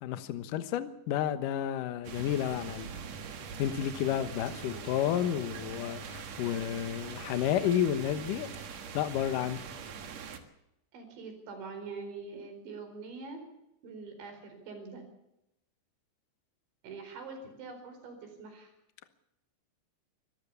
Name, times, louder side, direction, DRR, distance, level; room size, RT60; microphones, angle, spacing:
voice 1, 0.0-2.9 3.6-8.5 8.9-9.6, left 10 dB, 65° left, 11 dB, 2.3 m, -31 dB
sound 1, 2.0-10.4, right 6 dB, 55° right, 2.1 m, -43 dB
voice 2, 10.9-13.4 13.8-15.0 16.8-18.7, right 4 dB, 80° right, 6 dB, 6.8 m, -44 dB
24.5 x 15.0 x 7.1 m, 0.85 s
omnidirectional pair, 5.1 m